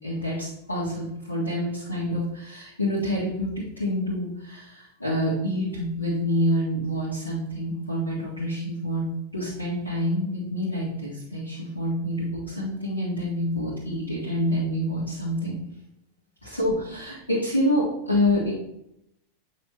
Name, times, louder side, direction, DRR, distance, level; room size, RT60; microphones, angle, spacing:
voice 1, 0.0-15.5 16.4-18.5, equal, 85° left, -8 dB, 1.7 m, -27 dB
7.8 x 6.0 x 3.0 m, 0.79 s
figure-of-eight pair, 90°, 0 cm